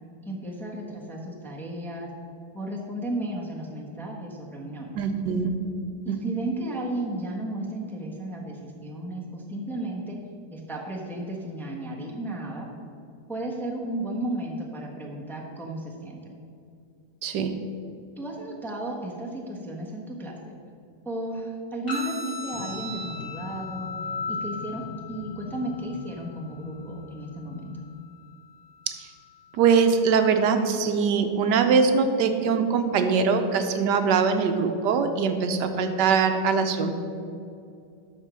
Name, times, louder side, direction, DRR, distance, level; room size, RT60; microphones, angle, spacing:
voice 1, 0.2-2.1 2.5-5.0 6.0-10.2 10.5-12.7 13.3-16.4 18.2-20.6 21.0-23.9 24.3-27.7, right 1 dB, ahead, -2 dB, 0.9 m, -34 dB
voice 2, 4.9-5.5 6.1-6.2 17.2-17.5 28.9-29.1 29.5-36.9, right 5 dB, 80° right, 7 dB, 1.3 m, -22 dB
sound 1, 21.9-29.9, left 3 dB, 30° left, 2.9 m, -38 dB
sound 2, 22.5-27.9, left 4 dB, 85° left, 1.3 m, -42 dB
12.0 x 4.5 x 6.2 m, 2.5 s
omnidirectional pair, 1.9 m